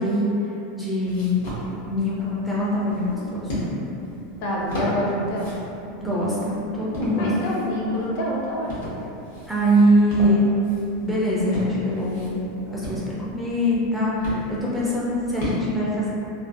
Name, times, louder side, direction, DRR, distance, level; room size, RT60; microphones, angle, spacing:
voice 1, 0.0-1.4 1.8-3.5 6.0-7.3 9.5-10.5 11.0-12.4 12.7-16.1, equal, ahead, -8 dB, 0.3 m, -23 dB
sound 1, 1.0-15.6, equal, 85° left, 1.0 m, -35 dB
voice 2, 4.4-5.5 7.2-8.7, equal, 55° left, -4 dB, 0.5 m, -26 dB
2.5 x 2.4 x 2.5 m, 2.8 s
supercardioid pair, 165°, 0 cm